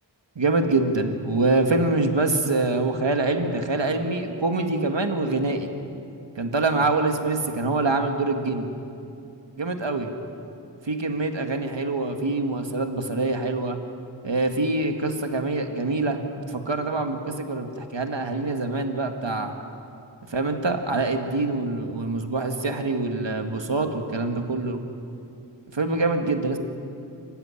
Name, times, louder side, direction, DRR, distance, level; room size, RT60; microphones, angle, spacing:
voice 1, 0.4-5.7 6.4-8.7 9.6-10.1 10.8-13.8 14.2-19.5 20.3-24.8 25.7-26.6, right 2 dB, 75° right, 5 dB, 2.0 m, -25 dB
26.5 x 15.5 x 9.9 m, 2.6 s
wide cardioid pair, 65°, 45 cm